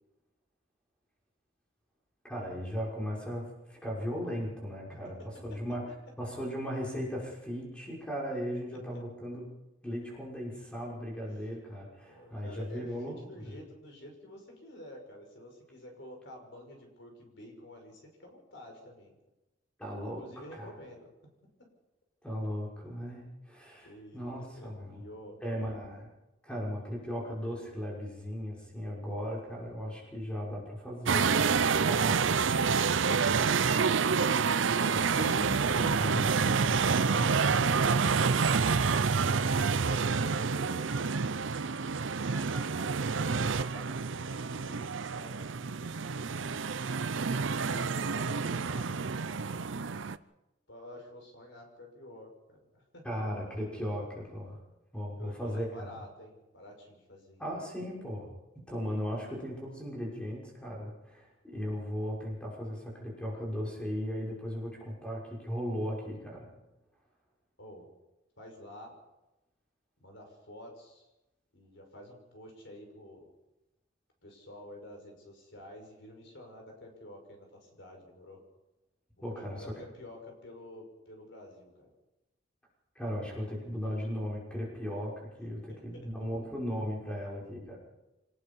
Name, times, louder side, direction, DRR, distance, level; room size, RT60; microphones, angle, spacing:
voice 1, 2.2-5.1 5.4-5.8 6.2-9.4 9.8-13.1 13.4-13.5 19.8-20.7 22.2-25.0 25.4-26.1 26.4-32.6 34.9-37.6 38.0-38.1 53.0-54.6 54.9-55.9 57.4-58.3 58.5-66.5 79.2-79.7 82.9-87.8, equal, 5° left, -3 dB, 6.1 m, -37 dB
voice 2, 5.2-5.6 8.9-9.0 12.0-19.2 20.2-21.1 23.8-24.3 24.5-25.7 32.9-34.0 37.1-41.4 42.1-46.2 47.4-48.9 50.7-53.2 55.2-57.5 67.6-67.9 68.4-69.0 70.0-71.1 71.5-73.3 74.2-78.4 79.2-81.9 85.7-86.1, left 1 dB, 65° left, 2 dB, 5.9 m, -49 dB
sound 1, 31.1-50.2, right 5 dB, 65° right, 0.6 m, -28 dB
25.5 x 19.0 x 5.6 m, 0.99 s
head